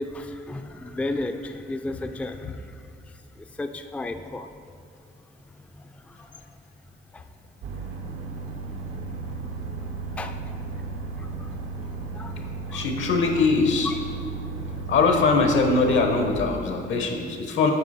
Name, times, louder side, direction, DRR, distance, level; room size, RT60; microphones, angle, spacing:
voice 1, 0.0-4.5 5.2-6.6 7.1-7.2 10.1-10.6 11.2-11.6 11.9-12.9 13.3-13.4 13.8-14.0, left 2 dB, 5° left, 7 dB, 0.3 m, -35 dB
sound 1, 7.6-16.4, right 3 dB, 85° right, 0.8 m, -34 dB
voice 2, 12.7-13.9 14.9-17.7, left 4 dB, 75° left, 3 dB, 1.0 m, -22 dB
8.1 x 4.8 x 4.2 m, 2.3 s
cardioid pair, 90°, 20 cm